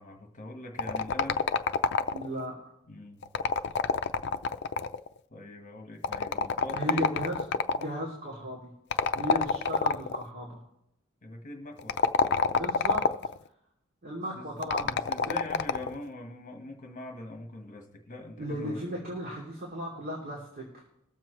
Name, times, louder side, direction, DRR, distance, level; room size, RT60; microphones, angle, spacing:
voice 1, 0.0-1.5 2.9-3.2 5.3-7.1 11.2-12.0 14.3-18.9, left 2 dB, 40° left, 2 dB, 1.4 m, -43 dB
sound 1, 0.8-2.4 3.2-5.1 6.0-7.9 8.9-10.2 11.8-13.4 14.6-16.0, left 5 dB, 55° left, 0.5 m, -27 dB
voice 2, 2.1-2.5 6.7-7.4 7.7-8.7 9.1-10.6 12.5-13.1 14.0-15.4 18.4-20.8, equal, 45° right, -4 dB, 2.9 m, -35 dB
22.0 x 7.4 x 3.2 m, 0.80 s
head